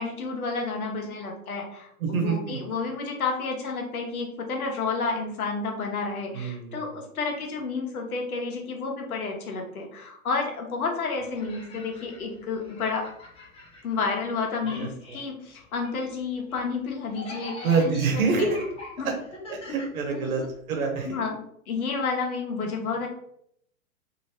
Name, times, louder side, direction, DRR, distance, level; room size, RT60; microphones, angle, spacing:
voice 1, 0.0-13.0 13.8-18.0 18.3-18.5 19.0-19.1 20.2-20.5 21.0-21.3 21.7-23.1, left 4 dB, 85° left, 1 dB, 1.1 m, -30 dB
voice 2, 2.0-2.6 6.3-6.8 14.6-14.9 17.6-18.6 19.0-19.1 19.5-20.4 20.7-21.1, right 4 dB, 75° right, 2 dB, 1.1 m, -26 dB
sound 1, 11.2-14.3 14.6-20.6, left 2 dB, 15° left, 0.6 m, -44 dB
2.9 x 2.9 x 3.0 m, 0.69 s
hypercardioid pair, 120°, 42 cm